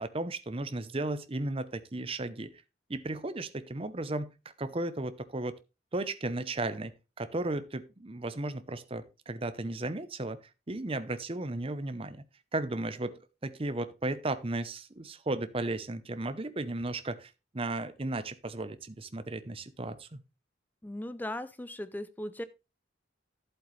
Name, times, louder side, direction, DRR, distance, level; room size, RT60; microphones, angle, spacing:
voice 1, 0.0-2.5 2.9-4.3 4.6-5.5 5.9-10.4 10.7-12.2 12.5-20.2, right 2 dB, 30° right, 12 dB, 0.8 m, -35 dB
voice 2, 20.8-22.4, left 1 dB, 10° left, 14 dB, 0.5 m, -38 dB
11.5 x 7.9 x 3.2 m, 0.28 s
head